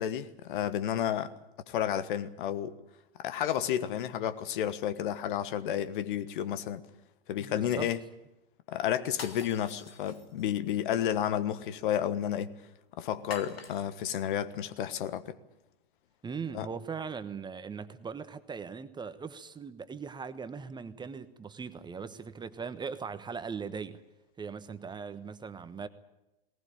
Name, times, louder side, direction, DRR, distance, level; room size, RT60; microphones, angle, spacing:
voice 1, 0.0-1.3 1.7-2.7 3.2-6.8 7.3-8.0 8.7-12.5 13.0-15.4 16.5-16.7, left 10 dB, 55° left, 1.4 m, -31 dB
voice 2, 7.4-7.9 16.2-24.0 24.4-25.9, right 5 dB, 15° right, 1.1 m, -39 dB
sound 1, 9.1-10.6 13.3-14.2, left 5 dB, 80° left, 2.2 m, -45 dB
19.5 x 19.5 x 8.9 m
figure-of-eight pair, 95°, 30 cm